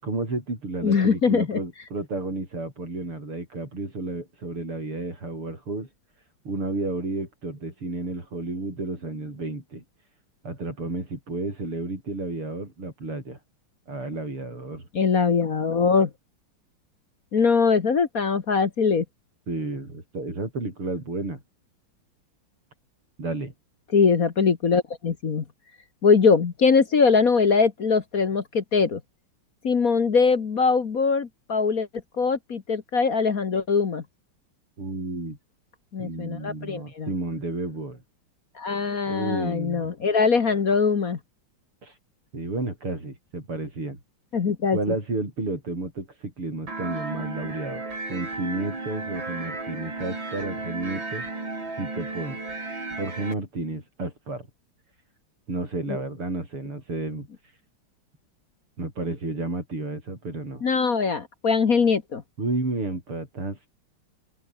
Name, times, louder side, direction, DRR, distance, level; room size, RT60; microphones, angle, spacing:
voice 1, 0.0-5.9 6.5-9.8 10.4-13.4 13.9-14.9 19.5-21.4 23.2-23.5 34.8-35.4 36.0-38.0 39.1-39.9 41.8-41.9 42.3-44.0 44.7-51.2 51.8-52.4 53.0-54.5 55.5-57.3 58.8-60.6 62.4-63.7, right 2 dB, 80° right, 8.7 m, -31 dB
voice 2, 0.8-1.6 14.9-16.1 17.3-19.1 23.9-25.4 26.0-29.0 29.6-31.9 32.2-34.0 35.9-37.1 38.6-41.2 44.3-44.8 55.9-56.0 60.6-62.2, left 5 dB, 45° left, 1.7 m, -22 dB
sound 1, 46.7-53.3, right 3 dB, 60° right, 6.7 m, -34 dB
open air
omnidirectional pair, 2.4 m